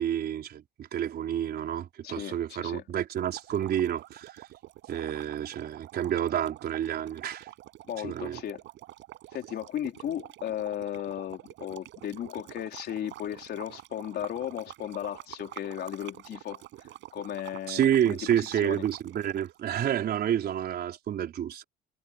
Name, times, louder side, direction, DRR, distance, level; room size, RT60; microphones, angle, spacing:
voice 1, 0.0-4.5 4.9-7.5 8.0-8.4 17.7-21.6, right 10 dB, 55° right, 4.7 m, -29 dB
voice 2, 2.0-2.8 7.9-8.6 9.3-18.8, left 11 dB, 60° left, 4.3 m, -36 dB
sound 1, 3.1-19.6, right 15 dB, 75° right, 7.9 m, -47 dB
cardioid pair, 105°, 19 cm